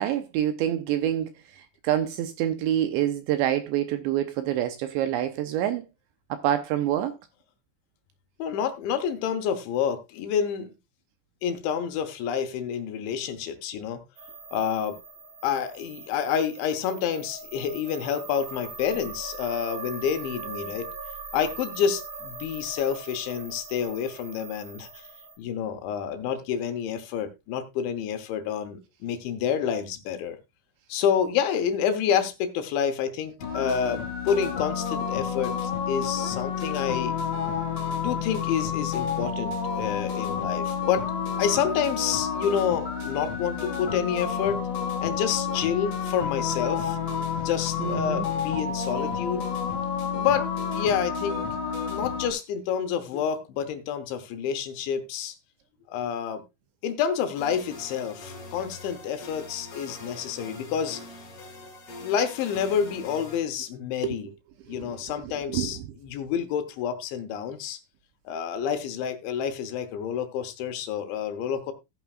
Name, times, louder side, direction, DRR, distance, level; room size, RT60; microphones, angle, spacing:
voice 1, 0.0-5.8 6.3-7.1 47.8-48.3 64.0-64.2 64.7-65.0 65.3-65.8, right 11 dB, 80° right, 2.7 m, -27 dB
voice 2, 8.4-10.7 11.4-14.0 14.5-15.0 15.4-20.9 21.3-25.1 25.4-30.4 30.9-37.2 38.0-44.6 45.0-47.0 47.4-49.5 50.2-51.4 51.9-55.3 55.9-56.4 56.8-61.0 62.0-64.3 64.7-67.8 68.3-71.7, left 8 dB, 75° left, 3.0 m, -28 dB
sound 1, 14.2-25.4, right 4 dB, 50° right, 4.4 m, -41 dB
sound 2, 33.4-52.3, left 7 dB, 60° left, 1.7 m, -30 dB
sound 3, 57.3-63.4, left 2 dB, 40° left, 2.6 m, -43 dB
15.5 x 9.3 x 2.4 m
omnidirectional pair, 6.0 m